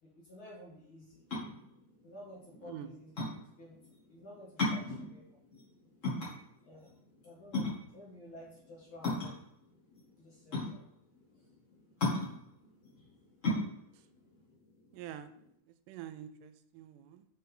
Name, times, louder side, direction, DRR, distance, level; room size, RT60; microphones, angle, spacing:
voice 1, 0.0-1.2 2.0-3.1 3.6-3.8 4.1-5.4 6.6-6.9 7.2-9.3 10.2-10.9 11.4-11.5 13.0-13.1, left 1 dB, 50° left, -4 dB, 1.7 m, -52 dB
sound 1, 1.1-15.5, left 2 dB, 30° left, 2.0 m, -36 dB
voice 2, 2.6-2.9 13.9-14.0 14.9-15.3 15.7-17.3, right 10 dB, 85° right, 11 dB, 2.1 m, -46 dB
5.8 x 5.2 x 3.7 m, 0.72 s
omnidirectional pair, 3.7 m